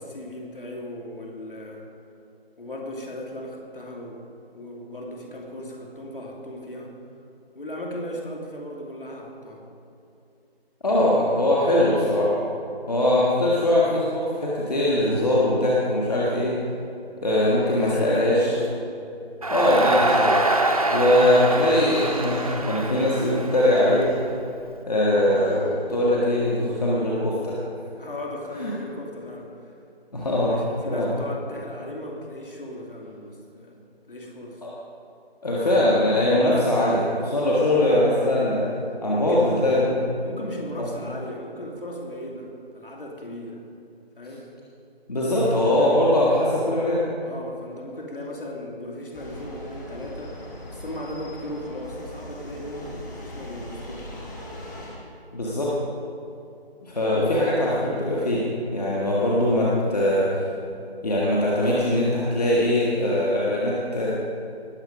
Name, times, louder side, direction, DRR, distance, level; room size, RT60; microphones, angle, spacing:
voice 1, 0.0-1.9 2.6-4.3 4.5-6.9 7.5-9.6 11.8-12.1 17.7-18.8 28.0-29.7 30.5-33.8 34.1-34.6 39.1-39.8 40.2-43.6 44.2-44.5 45.7-46.0 47.2-54.1 55.4-55.6, left 1 dB, 55° left, -1 dB, 2.8 m, -36 dB
voice 2, 10.8-12.4 12.9-16.6 17.2-18.5 19.5-20.4 20.9-24.1 24.9-27.7 28.6-28.7 30.1-30.6 30.9-31.1 34.6-34.7 35.4-38.7 39.0-39.9 40.8-40.9 45.1-47.0 55.3-55.8 56.8-58.4 58.7-60.4 61.0-64.1, left 1 dB, 40° left, -5 dB, 1.7 m, -21 dB
sound 1, 17.4-18.3 19.8-20.5 21.7-22.6 23.9-24.3 25.2-26.0, equal, 75° left, 3.5 m, -43 dB
Crowd, 19.4-24.6, right 2 dB, 35° right, 0.8 m, -25 dB
sound 2, 49.1-54.9, equal, 20° left, 1.6 m, -39 dB
20.0 x 7.4 x 5.2 m, 2.7 s
figure-of-eight pair, 165°, 32 cm